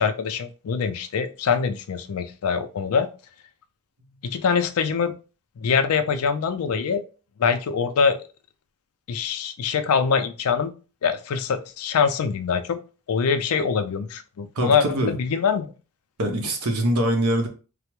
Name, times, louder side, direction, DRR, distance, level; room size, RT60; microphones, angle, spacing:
voice 1, 0.0-3.1 4.2-5.1 5.6-7.0 7.4-8.2 9.1-10.7 11.0-12.8 13.1-15.7, left 6 dB, 75° left, 10 dB, 0.4 m, -24 dB
voice 2, 14.5-15.1 16.2-17.5, right 1 dB, 80° right, 4 dB, 0.8 m, -23 dB
3.3 x 2.0 x 3.0 m, 0.34 s
head